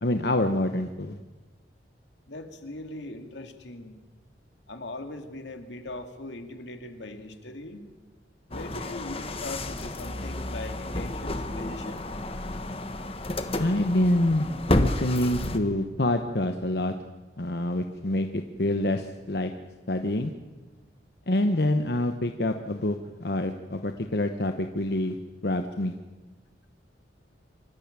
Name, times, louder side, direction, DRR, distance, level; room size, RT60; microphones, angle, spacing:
voice 1, 0.0-1.2 13.6-14.5 14.7-16.9 17.4-19.5 19.9-20.3 21.3-25.2 25.4-25.9, left 1 dB, 65° left, 6 dB, 1.1 m, -26 dB
voice 2, 2.3-4.0 4.7-7.9 8.5-12.1, left 2 dB, 90° left, 6 dB, 2.4 m, -40 dB
sound 1, 8.5-15.6, left 1 dB, 30° left, 1.3 m, -31 dB
25.0 x 14.0 x 8.9 m, 1.2 s
head